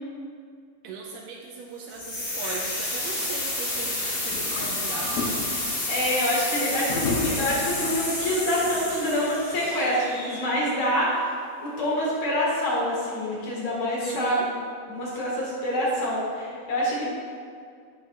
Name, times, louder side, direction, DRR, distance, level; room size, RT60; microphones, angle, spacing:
voice 1, 0.8-5.2 14.0-14.5, right 4 dB, 80° right, 0 dB, 2.1 m, -38 dB
sound 1, 1.9-10.8, left 1 dB, 40° left, 1.2 m, -30 dB
sound 2, 2.0-9.7, left 3 dB, 75° left, 2.4 m, -36 dB
voice 2, 5.9-14.4 14.9-17.0, equal, 55° left, -5 dB, 2.7 m, -26 dB
11.0 x 8.4 x 2.4 m, 2.3 s
omnidirectional pair, 4.2 m